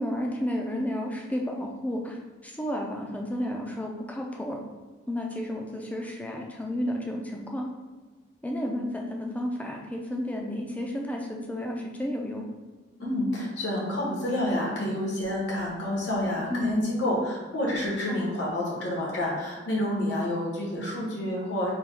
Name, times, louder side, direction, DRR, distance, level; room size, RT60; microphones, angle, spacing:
voice 1, 0.0-2.2 2.4-4.6 5.1-7.7 8.4-12.5 16.5-16.9 18.1-18.3, left 1 dB, 10° left, 0 dB, 0.4 m, -32 dB
voice 2, 13.0-21.7, left 1 dB, 80° left, -5 dB, 1.2 m, -29 dB
3.4 x 2.3 x 4.3 m, 1.3 s
head